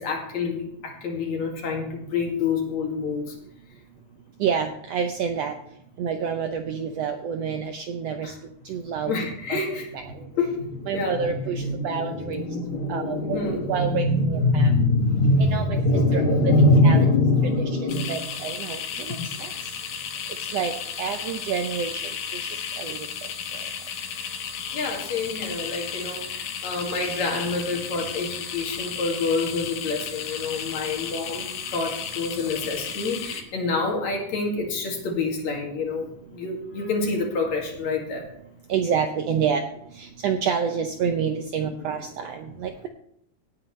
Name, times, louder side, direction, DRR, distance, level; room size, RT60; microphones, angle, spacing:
voice 1, 0.0-3.3 8.2-8.4 9.0-18.3 18.6-18.7 24.7-38.3 41.7-41.8, left 2 dB, 65° left, 0 dB, 3.4 m, -25 dB
voice 2, 4.4-5.5 6.0-8.3 8.7-9.1 9.5-9.6 9.9-10.0 10.9-12.4 12.9-13.4 13.7-14.7 15.5-15.8 16.1-16.4 16.8-17.1 18.1-18.8 19.1-19.5 20.5-20.7 21.0-22.0 22.8-23.0 38.7-39.6 40.0-42.9, right 7 dB, 75° right, 6 dB, 1.5 m, -28 dB
sound 1, 17.9-33.4, left 7 dB, 85° left, 2.8 m, -34 dB
17.5 x 8.9 x 3.2 m, 0.75 s
omnidirectional pair, 3.6 m